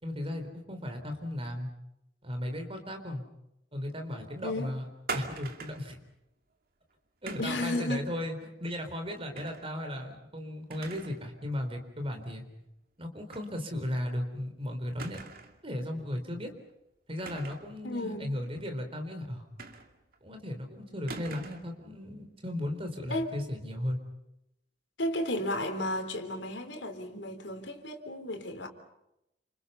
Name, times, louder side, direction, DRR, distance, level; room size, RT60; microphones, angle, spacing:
voice 1, 0.0-1.7 2.2-3.2 3.7-4.8 5.1-6.0 7.2-12.4 13.0-15.2 15.6-16.5 17.1-19.4 20.2-24.0, left 1 dB, 30° right, 5 dB, 4.1 m, -36 dB
sound 1, 5.1-5.9 7.3-7.7 9.4-9.7 10.1-10.2 10.7-11.2 11.6-11.7 13.3-13.5 13.8-13.9 15.0-15.6 17.2-17.7 19.6-20.2 21.1-21.7, right 4 dB, 55° right, 2.4 m, -41 dB
voice 2, 7.4-8.1 17.8-18.3 23.1-23.3 25.0-28.7, left 1 dB, 85° left, 6 dB, 3.6 m, -33 dB
29.0 x 27.5 x 5.7 m, 0.87 s
head